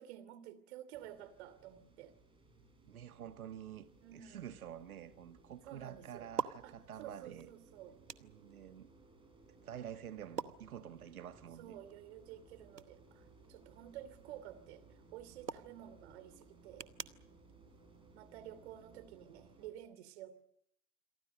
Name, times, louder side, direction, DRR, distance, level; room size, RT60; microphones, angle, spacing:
voice 1, 0.0-2.1 4.0-4.5 5.6-6.3 6.6-8.0 11.6-14.8 15.1-16.9 18.1-20.4, right 11 dB, 40° right, 2.8 m, -51 dB
sound 1, 0.9-19.7, right 3 dB, 10° right, 6.6 m, -63 dB
voice 2, 2.8-7.5 8.2-8.9 9.6-11.8, right 9 dB, 60° right, 1.4 m, -49 dB
sound 2, 3.6-18.8, right 6 dB, 80° right, 1.2 m, -50 dB
28.0 x 23.0 x 6.6 m
figure-of-eight pair, 105°, 48 cm